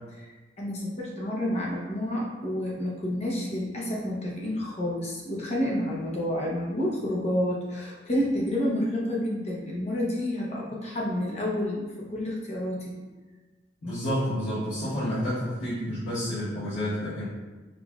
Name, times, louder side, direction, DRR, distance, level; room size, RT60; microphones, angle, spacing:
voice 1, 0.6-12.9, left 1 dB, 35° left, -4 dB, 0.8 m, -29 dB
voice 2, 13.8-17.2, equal, 75° left, -14 dB, 1.2 m, -29 dB
5.0 x 2.5 x 2.3 m, 1.3 s
head